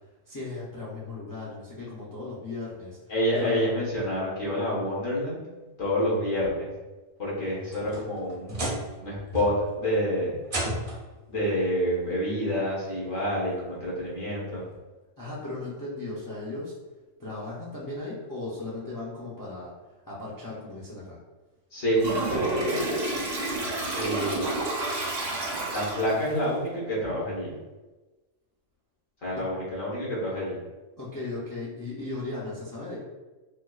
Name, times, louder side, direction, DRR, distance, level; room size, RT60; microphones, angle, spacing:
voice 1, 0.3-3.0 3.3-3.7 15.2-16.8 17.2-19.7 20.1-21.2 29.3-29.4 31.0-33.0, left 2 dB, 30° left, -6 dB, 0.4 m, -36 dB
voice 2, 3.1-5.4 5.8-6.7 7.2-8.7 9.0-10.3 11.3-14.6 21.7-22.9 23.9-24.5 25.7-27.5 29.2-30.6, equal, 85° left, -6 dB, 1.6 m, -28 dB
sound 1, 7.4-9.0 9.3-9.8 10.4-11.1 12.3-12.4 13.0-13.1 14.7-14.8, right 1 dB, 40° right, 0.6 m, -33 dB
Toilet flush, 22.0-26.3, right 2 dB, 75° right, 1.1 m, -29 dB
4.2 x 2.3 x 2.4 m, 1.2 s
omnidirectional pair, 1.3 m